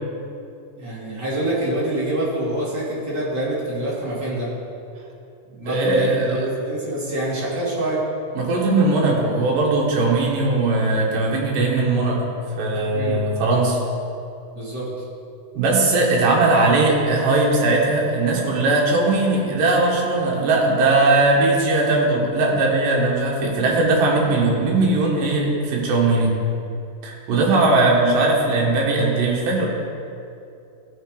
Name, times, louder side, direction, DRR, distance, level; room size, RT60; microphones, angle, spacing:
voice 1, 0.8-4.5 5.5-8.0 12.9-13.2 14.5-14.9, right 1 dB, 30° right, -8 dB, 2.8 m, -26 dB
voice 2, 5.7-6.5 8.4-12.2 12.6-13.8 15.5-26.4 27.0-29.7, right 2 dB, 60° right, -2 dB, 3.0 m, -19 dB
15.0 x 6.0 x 4.9 m, 2.7 s
omnidirectional pair, 4.7 m